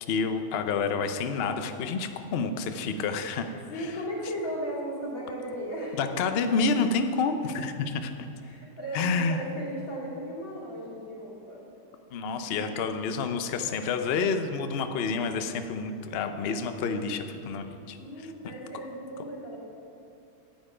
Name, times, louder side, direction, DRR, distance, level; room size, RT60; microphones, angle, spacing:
voice 1, 0.1-3.9 6.0-8.1 8.9-9.4 12.1-18.0, left 4 dB, 85° left, 8 dB, 0.5 m, -29 dB
voice 2, 3.7-6.0 6.3-6.9 7.4-7.5 8.4-11.6 12.3-12.8 18.0-19.6, equal, 55° left, -6 dB, 3.0 m, -36 dB
9.1 x 8.9 x 5.0 m, 2.8 s
omnidirectional pair, 1.8 m